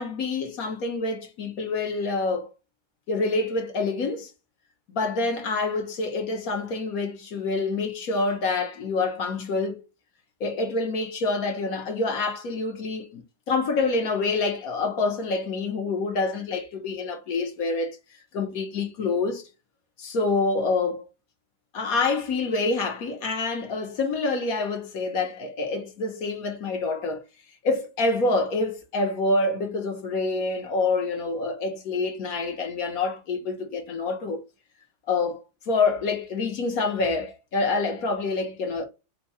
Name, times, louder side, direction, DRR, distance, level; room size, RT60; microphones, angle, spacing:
voice 1, 0.0-2.5 3.1-4.3 4.9-9.8 10.4-18.0 18.3-19.4 20.0-21.1 21.7-27.2 27.6-34.4 35.1-38.8, left 3 dB, 55° left, 1.1 m, -27 dB
4.6 x 2.2 x 4.1 m
omnidirectional pair, 2.2 m